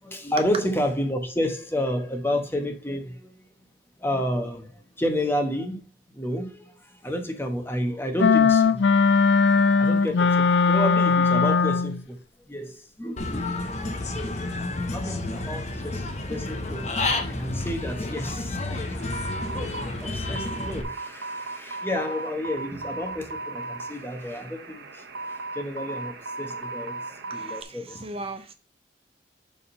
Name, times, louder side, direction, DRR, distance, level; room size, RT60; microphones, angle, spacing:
voice 1, 0.0-3.4 4.0-5.8 6.1-8.8 9.5-12.2 12.5-13.8 14.1-14.6 14.9-16.9 17.2-19.2 19.5-28.1, equal, 15° left, 1.0 m, -31 dB
sound 1, 8.2-12.0, left 5 dB, 90° left, 0.4 m, -19 dB
Human voice / Bird, 13.2-20.8, left 2 dB, 40° left, 1.1 m, -30 dB
sound 2, 19.0-27.6, right 3 dB, 80° right, 1.1 m, -36 dB
voice 2, 27.3-28.5, right 2 dB, 35° right, 0.6 m, -38 dB
7.0 x 3.7 x 5.3 m
head